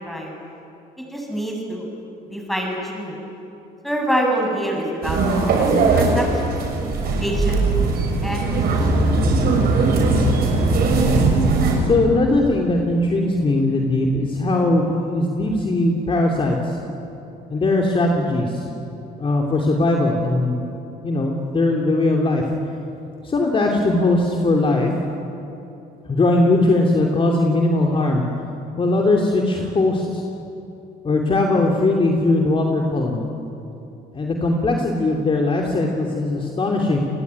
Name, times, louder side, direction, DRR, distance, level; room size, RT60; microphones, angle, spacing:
voice 1, 1.0-1.9 2.3-3.2 3.8-5.2 5.6-5.7 5.9-6.5 7.2-7.7 8.2-8.4, equal, ahead, 0 dB, 7.5 m, -25 dB
sound 1, 5.0-11.7, right 3 dB, 65° right, 6.4 m, -19 dB
voice 2, 11.8-16.8 17.5-18.6 19.2-20.6 21.0-22.5 23.2-24.9 26.1-28.2 28.8-30.2 31.0-33.2 34.1-37.0, left 2 dB, 30° left, 1 dB, 3.0 m, -19 dB
29.0 x 19.5 x 9.7 m, 2.8 s
cardioid pair, 110°, 17 cm